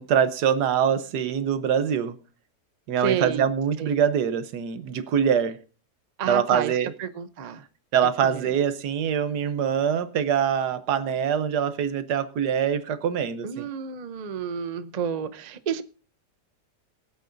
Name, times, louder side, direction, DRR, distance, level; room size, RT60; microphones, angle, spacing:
voice 1, 0.0-2.1 2.9-5.6 6.3-6.9 7.9-13.7, right 8 dB, 80° right, 1.5 m, -24 dB
voice 2, 3.0-3.4 3.8-3.9 6.2-6.7 7.0-7.7 8.3-8.5 13.4-15.8, right 7 dB, 65° right, 0.4 m, -30 dB
23.0 x 8.1 x 2.6 m
omnidirectional pair, 1.7 m